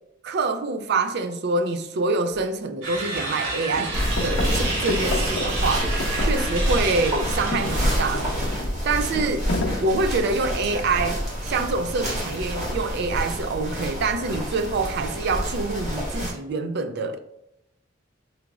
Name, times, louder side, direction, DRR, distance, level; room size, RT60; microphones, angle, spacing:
voice 1, 0.2-8.5 8.8-9.5 9.8-17.2, right 3 dB, 55° right, 0.4 m, -26 dB
sound 1, 2.3-2.4 2.9-3.5 3.7-6.9 7.2-10.8 11.8-12.2, left 2 dB, 80° left, 0.7 m, -32 dB
sound 2, 2.8-8.5, right 2 dB, 75° right, 1.1 m, -31 dB
sound 3, 3.9-16.3, equal, 35° right, 1.3 m, -27 dB
4.9 x 2.9 x 2.4 m
head